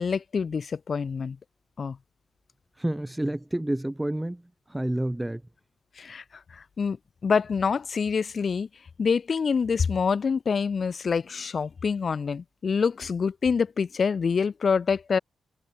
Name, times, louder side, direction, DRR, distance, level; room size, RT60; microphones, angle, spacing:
voice 1, 0.0-1.4 1.8-2.0 6.0-6.2 6.5-7.0 7.2-8.7 9.0-15.2, left 5 dB, 45° left, 2.5 m, -26 dB
voice 2, 2.8-4.4 4.7-5.4, right 1 dB, 10° right, 6.9 m, -29 dB
cardioid pair, 100°, 0 cm